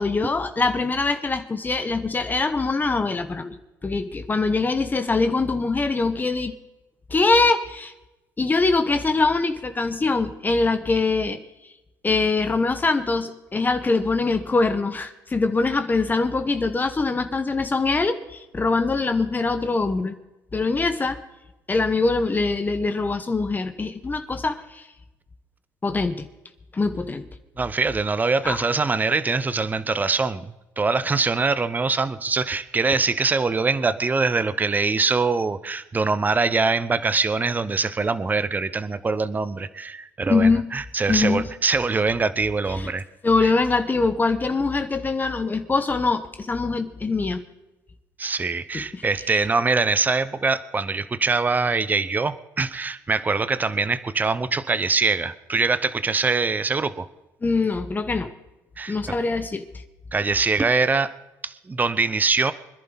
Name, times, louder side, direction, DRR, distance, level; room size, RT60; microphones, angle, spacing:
voice 1, 0.0-6.5 7.1-7.9 8.4-11.4 12.0-20.1 20.5-21.2 21.7-24.9 25.8-26.2 26.7-27.3 28.4-28.6 40.3-40.6 41.1-41.5 42.8-42.9 43.2-47.4 48.7-49.0 49.3-49.4 57.4-58.3 58.9-59.7, left 3 dB, 25° left, 9 dB, 1.2 m, -23 dB
voice 2, 27.6-43.0 43.4-43.5 48.2-57.1 58.8-59.0 60.1-61.1 61.4-62.5, right 4 dB, 25° right, 14 dB, 0.8 m, -23 dB
25.0 x 11.0 x 4.0 m, 0.99 s
supercardioid pair, 80°, 7 cm